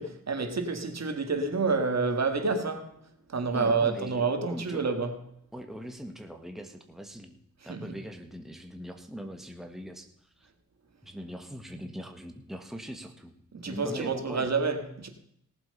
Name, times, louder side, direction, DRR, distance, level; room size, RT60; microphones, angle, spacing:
voice 1, 0.0-3.0 3.3-5.2 7.7-8.0 13.5-15.1, right 4 dB, 50° right, 2.0 m, -28 dB
voice 2, 3.5-4.8 5.5-7.4 7.6-10.5 11.0-13.3 13.6-14.5, equal, ahead, 1.6 m, -41 dB
18.0 x 7.7 x 5.5 m
cardioid pair, 90°, 33 cm